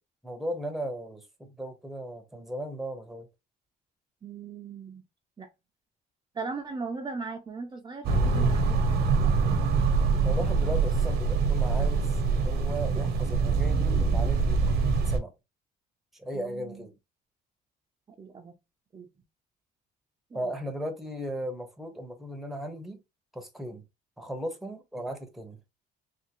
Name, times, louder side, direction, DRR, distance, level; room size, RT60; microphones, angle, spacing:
voice 1, 0.2-3.3 10.2-14.7 15.1-15.3 16.1-16.9 20.3-23.0 23.3-23.8 24.2-25.6, equal, ahead, 0.9 m, -36 dB
voice 2, 4.2-5.0 5.4-5.5 6.3-9.5 16.3-16.8 18.2-18.6 18.9-19.1 20.3-20.5, right 4 dB, 25° right, 0.5 m, -39 dB
sound 1, 8.0-15.2, right 4 dB, 75° right, 0.9 m, -24 dB
3.6 x 2.5 x 2.9 m
cardioid pair, 110°, 17 cm